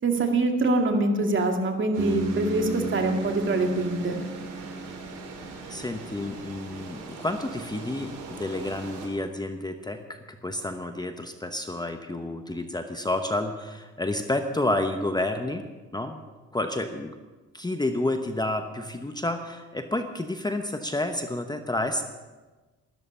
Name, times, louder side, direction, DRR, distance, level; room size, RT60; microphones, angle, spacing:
voice 1, 0.0-4.2, right 2 dB, 40° right, 3 dB, 2.3 m, -24 dB
sound 1, 1.9-9.1, right 3 dB, 90° right, 3.4 m, -41 dB
Bass guitar, 2.0-6.0, right 2 dB, 20° right, 1.5 m, -35 dB
voice 2, 5.7-15.6 15.9-16.2 16.5-17.1 17.5-22.0, left 1 dB, 15° left, 7 dB, 1.0 m, -30 dB
14.0 x 13.0 x 5.5 m, 1.2 s
cardioid pair, 90°, 30 cm